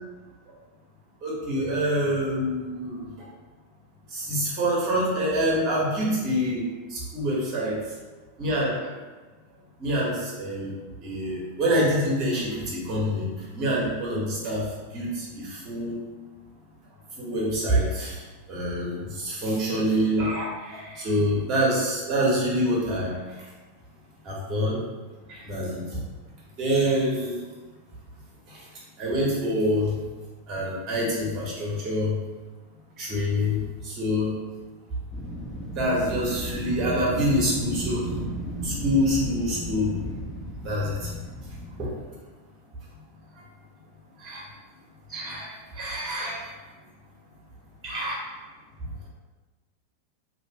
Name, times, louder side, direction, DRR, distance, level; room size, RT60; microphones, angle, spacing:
voice 1, 1.2-3.3 4.1-7.8 8.4-8.9 9.8-16.0 17.2-18.2 18.5-23.4 24.2-24.8 25.3-26.0 26.6-27.4 28.5-28.7 29.0-30.0 30.5-32.2 33.0-34.4 35.7-38.2 38.6-40.0 40.5-41.1 41.8-41.9 44.2-44.4 45.1-45.5 45.7-46.5 47.8-48.1 48.8-48.9, equal, 35° right, -5 dB, 1.0 m, -26 dB
Wind, 35.1-42.1, equal, 5° left, 0.7 m, -34 dB
2.8 x 2.4 x 2.9 m, 1.3 s
figure-of-eight pair, 90°, 0 cm